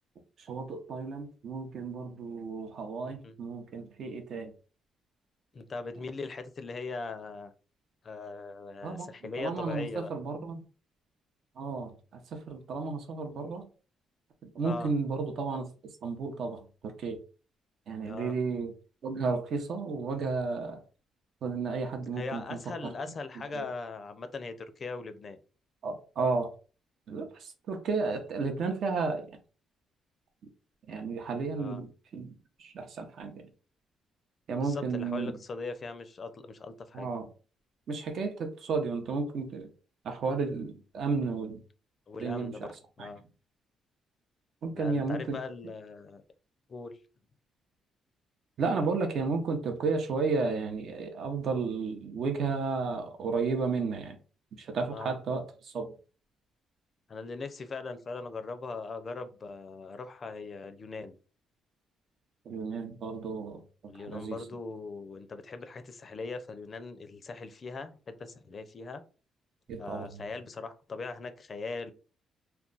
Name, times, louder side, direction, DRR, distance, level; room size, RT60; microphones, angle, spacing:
voice 1, 0.5-4.5 8.8-9.1 9.4-10.6 11.6-11.9 12.3-13.7 14.5-15.7 16.0-17.2 17.9-18.7 19.0-20.8 21.4-22.6 23.5-23.7 25.8-26.5 27.1-29.3 30.9-32.3 32.6-33.3 34.5-35.4 36.9-37.3 37.9-39.7 40.0-41.6 42.2-42.5 43.0-43.1 44.6-45.4 48.6-54.2 54.6-55.9 62.5-63.6 64.1-64.4 69.7-70.2, right 4 dB, 65° right, 0.7 m, -32 dB
voice 2, 3.0-3.3 5.5-7.5 8.0-10.1 14.6-14.9 18.1-18.3 22.2-25.4 31.5-31.8 34.6-37.1 42.1-42.7 43.0-43.2 44.7-46.2 46.7-47.0 54.9-55.2 57.1-61.2 63.9-69.0 69.8-71.9, left 4 dB, 40° left, 0.4 m, -40 dB
2.3 x 2.2 x 3.8 m
cardioid pair, 90°, 0 cm